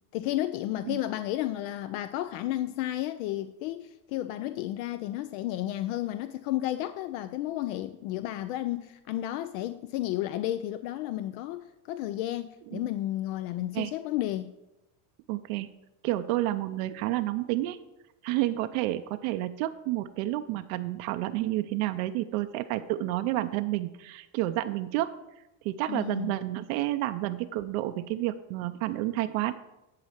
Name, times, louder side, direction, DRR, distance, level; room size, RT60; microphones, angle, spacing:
voice 1, 0.1-14.5 25.9-26.3, left 14 dB, 90° left, 0.6 m, -32 dB
voice 2, 15.3-15.7 16.0-17.8 18.2-25.1 25.6-29.5, right 15 dB, 85° right, 0.6 m, -30 dB
10.5 x 4.1 x 6.5 m
cardioid pair, 130°, 40 cm